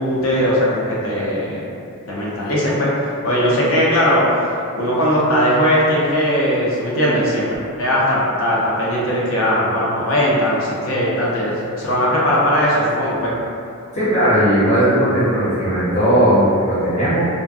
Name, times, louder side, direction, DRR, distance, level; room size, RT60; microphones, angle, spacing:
voice 1, 0.0-1.6 2.1-2.9 3.2-4.2 4.8-7.5 7.8-13.3, equal, 65° left, -6 dB, 0.5 m, -18 dB
voice 2, 13.9-17.3, equal, 30° left, -12 dB, 0.8 m, -17 dB
2.5 x 2.1 x 2.3 m, 2.5 s
head